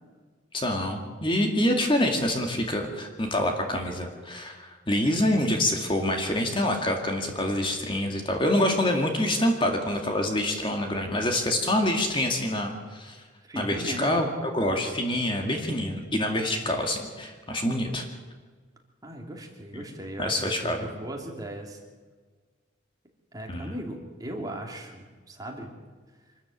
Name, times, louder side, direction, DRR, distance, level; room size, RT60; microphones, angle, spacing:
voice 1, 0.5-13.2 13.6-18.0 19.7-19.8 20.2-20.8 23.5-23.7, left 1 dB, 25° left, 3 dB, 2.2 m, -26 dB
voice 2, 13.4-14.2 19.0-21.8 23.3-25.7, right 1 dB, 20° right, 1 dB, 2.8 m, -37 dB
25.0 x 13.0 x 8.6 m, 1.4 s
head